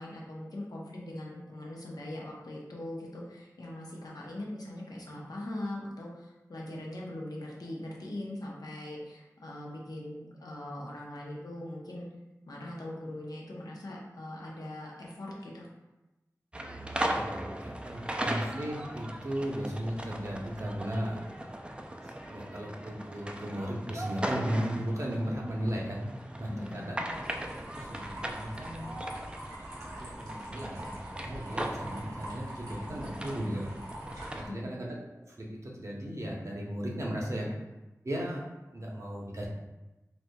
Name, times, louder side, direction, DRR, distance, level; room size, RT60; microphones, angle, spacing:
voice 1, 0.0-12.1 12.5-15.7 26.5-26.9 34.4-34.8, left 1 dB, 80° left, -3 dB, 0.7 m, -41 dB
sound 1, 16.5-34.4, right 1 dB, 15° right, 0.3 m, -38 dB
voice 2, 17.6-21.2 22.3-26.1 26.4-27.0 27.5-28.9 30.0-33.7 34.3-35.0 35.4-37.5 38.0-38.4 38.7-39.5, equal, 55° right, -2 dB, 0.8 m, -35 dB
sound 2, 27.1-34.5, right 1 dB, 85° right, 1.2 m, -45 dB
4.1 x 2.8 x 2.2 m, 1.0 s
wide cardioid pair, 45°, 6 cm